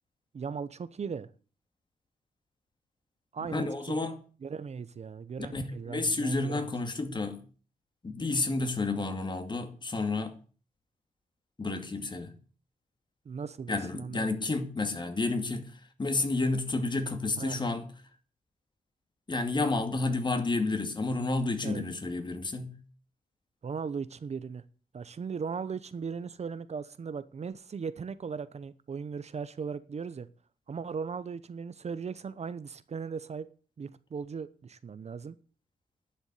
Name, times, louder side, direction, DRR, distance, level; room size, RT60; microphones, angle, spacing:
voice 1, 0.3-1.3 3.3-4.1 4.4-6.7 13.2-14.4 17.4-17.6 21.6-21.8 23.6-24.6 24.9-30.3 30.7-33.5 33.8-35.3, right 6 dB, 50° right, 0.9 m, -38 dB
voice 2, 3.5-4.1 5.5-7.4 8.0-10.3 11.6-12.3 13.7-15.7 16.0-17.9 19.3-22.8, left 3 dB, 30° left, 2.4 m, -30 dB
11.0 x 7.1 x 9.4 m
cardioid pair, 90°, 15 cm